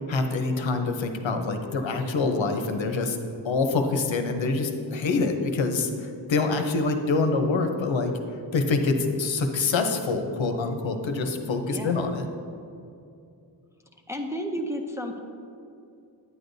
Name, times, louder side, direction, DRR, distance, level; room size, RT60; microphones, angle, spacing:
voice 1, 0.1-3.2 3.4-8.1 8.5-12.3, left 3 dB, 75° left, 6 dB, 0.8 m, -25 dB
voice 2, 11.7-12.0 14.1-15.2, equal, 5° right, 2 dB, 0.5 m, -32 dB
9.8 x 9.5 x 2.6 m, 2.6 s
wide cardioid pair, 120°, 46 cm